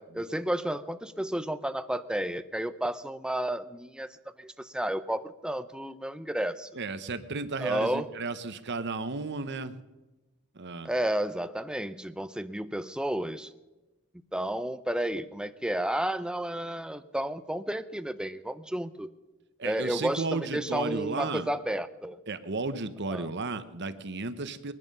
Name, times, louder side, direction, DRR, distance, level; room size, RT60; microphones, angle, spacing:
voice 1, 0.0-6.7 7.6-8.1 10.8-13.5 14.3-19.1 19.6-22.2 23.1-23.3, right 1 dB, 5° right, 12 dB, 0.6 m, -32 dB
voice 2, 6.7-9.7 10.5-10.9 19.6-21.5 22.3-24.7, right 3 dB, 50° right, 12 dB, 1.0 m, -34 dB
22.0 x 11.0 x 5.5 m, 1.1 s
head